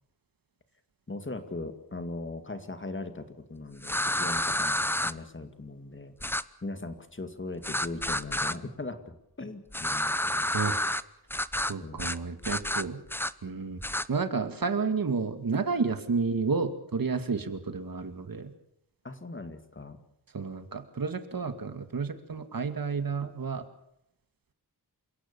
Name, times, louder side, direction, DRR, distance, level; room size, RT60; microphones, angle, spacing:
voice 1, 1.1-6.1 6.6-10.5 11.8-12.1 19.0-20.0, left 2 dB, 30° left, 8 dB, 2.2 m, -39 dB
sound 1, 3.8-5.1 6.2-6.4 7.6-8.6 9.7-11.0 11.3-11.7 12.0-12.2 12.4-13.3 13.8-14.1, left 1 dB, 5° left, 0.7 m, -29 dB
voice 2, 11.7-13.0 13.4-13.8 14.1-18.5 20.3-23.6, right 4 dB, 60° right, 8 dB, 2.2 m, -31 dB
28.5 x 17.0 x 7.0 m, 0.81 s
wide cardioid pair, 100°, 39 cm